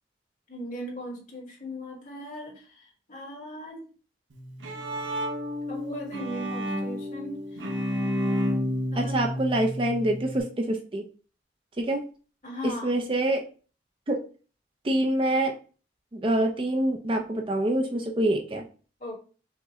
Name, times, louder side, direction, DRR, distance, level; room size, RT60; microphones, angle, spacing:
voice 1, 0.5-3.8 5.7-7.7 8.9-9.3 12.4-12.9 19.0-19.1, equal, 45° left, 0 dB, 1.5 m, -38 dB
Bowed string instrument, 4.3-10.4, equal, 85° right, 0.9 m, -30 dB
voice 2, 9.0-11.0 11.8-12.0 12.6-13.4 14.1-14.2 14.8-15.5 16.1-18.6, right 1 dB, 30° right, 2 dB, 0.5 m, -26 dB
5.6 x 2.2 x 3.6 m, 0.38 s
head